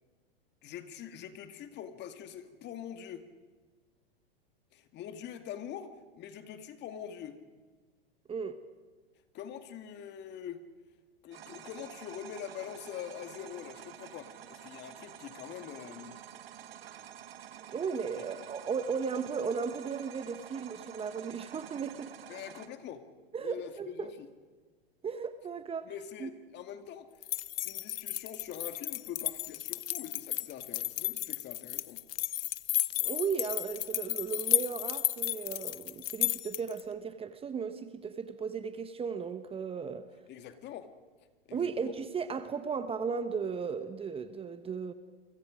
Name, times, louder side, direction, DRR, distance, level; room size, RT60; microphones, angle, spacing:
voice 1, 0.6-3.3 4.7-7.4 9.3-10.7 11.2-16.2 22.3-23.1 23.4-24.3 25.8-27.1 27.6-32.0 40.3-40.9 41.5-41.9, left 9 dB, 35° left, 2.1 m, -44 dB
sound 1, 11.3-22.7, right 10 dB, 75° right, 1.7 m, -49 dB
voice 2, 17.7-22.1 23.3-24.1 25.0-25.9 26.2-26.3 33.0-40.0 41.5-44.9, right 6 dB, 20° right, 1.3 m, -35 dB
sound 2, 27.2-36.8, left 14 dB, 70° left, 0.8 m, -33 dB
30.0 x 24.5 x 5.1 m
hypercardioid pair, 110°, 30 cm